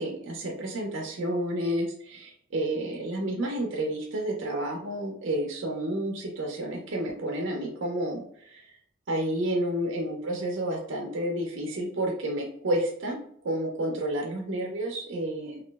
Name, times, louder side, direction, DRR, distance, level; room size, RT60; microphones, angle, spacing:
voice 1, 0.0-8.7 9.1-13.2 13.4-15.6, right 1 dB, 65° right, 0 dB, 0.6 m, -30 dB
3.0 x 2.4 x 2.3 m, 0.63 s
head